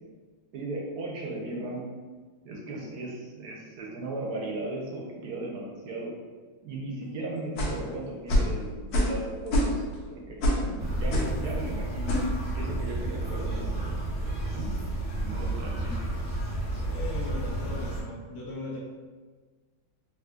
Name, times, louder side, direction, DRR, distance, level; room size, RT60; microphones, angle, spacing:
voice 1, 0.5-1.8 2.4-6.1 6.6-9.8 10.1-12.2 12.5-14.7 15.1-15.9, right 2 dB, 70° right, -2 dB, 1.0 m, -36 dB
sound 1, 7.6-7.8 8.3-8.5 8.9-9.2 9.5-9.9 10.4-10.7 11.1-11.4 12.1-12.3, equal, 65° left, 1.0 m, -24 dB
sound 2, 10.8-18.0, right 1 dB, 15° left, 0.8 m, -31 dB
voice 2, 16.7-18.8, left 3 dB, 85° left, -5 dB, 0.6 m, -38 dB
3.7 x 2.7 x 2.4 m, 1.4 s
omnidirectional pair, 2.1 m